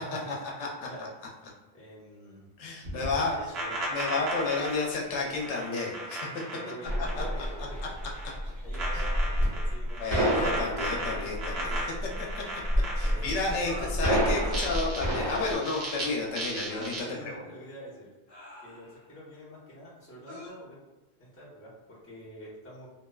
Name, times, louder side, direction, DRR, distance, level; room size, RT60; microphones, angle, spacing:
voice 1, 0.0-0.4 0.8-2.5 2.9-3.8 6.5-7.9 8.6-10.2 13.0-13.8 17.0-18.1 18.6-20.8 21.2-22.9, equal, 15° left, -9 dB, 0.8 m, -46 dB
voice 2, 2.6-3.4 3.9-6.4 7.2-7.5 8.9-9.0 10.0-11.8 12.2-12.4 13.0-17.4, left 3 dB, 90° left, -2 dB, 0.9 m, -31 dB
sound 1, 2.8-7.5 7.8-8.4 8.7-13.5 14.4-16.0 16.3-17.0, right 2 dB, 65° right, 1.0 m, -36 dB
sound 2, 6.8-15.5, equal, 35° right, 1.1 m, -29 dB
sound 3, 13.6-14.0 14.9-15.3 16.7-17.0 18.3-19.1 20.3-20.5, left 1 dB, 65° left, 0.9 m, -44 dB
2.7 x 2.2 x 2.2 m, 1.1 s
omnidirectional pair, 1.1 m